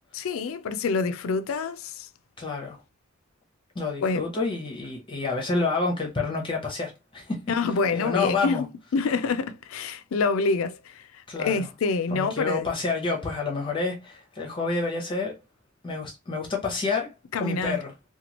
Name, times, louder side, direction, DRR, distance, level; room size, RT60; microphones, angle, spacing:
voice 1, 0.1-2.1 4.0-4.3 7.5-12.7 17.3-17.8, left 4 dB, 90° left, 0.4 m, -27 dB
voice 2, 2.4-2.8 3.7-7.4 7.9-8.6 11.3-11.7 12.1-15.4 15.8-17.9, left 3 dB, 25° left, 0.7 m, -29 dB
2.9 x 2.2 x 2.9 m
head